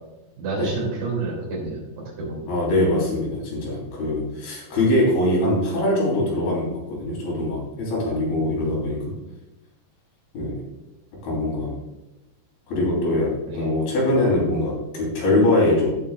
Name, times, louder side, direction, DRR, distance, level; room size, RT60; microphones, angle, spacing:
voice 1, 0.4-1.8 2.2-2.5 8.3-9.2 13.5-13.7, right 3 dB, 65° right, -3 dB, 4.5 m, -30 dB
voice 2, 2.5-9.0 10.3-10.6 11.2-11.7 12.7-15.9, left 1 dB, 75° left, -4 dB, 5.4 m, -22 dB
15.5 x 7.4 x 2.4 m, 0.98 s
omnidirectional pair, 4.3 m